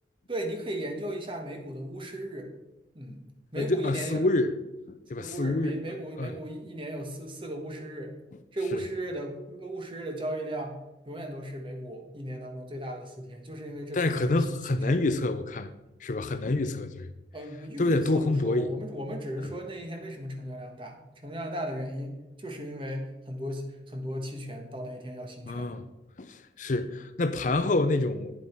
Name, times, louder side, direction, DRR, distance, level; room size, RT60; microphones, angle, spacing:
voice 1, 0.3-2.5 2.9-3.2 3.5-4.2 5.2-8.1 8.5-10.8 11.0-15.2 17.3-25.8, right 1 dB, 30° right, 1.3 m, -36 dB
voice 2, 3.6-4.5 5.1-5.8 6.2-6.3 8.7-8.8 13.9-15.7 16.0-17.1 17.8-18.7 25.5-25.9 26.2-28.4, left 2 dB, 45° left, 0.5 m, -27 dB
9.8 x 7.4 x 4.4 m
head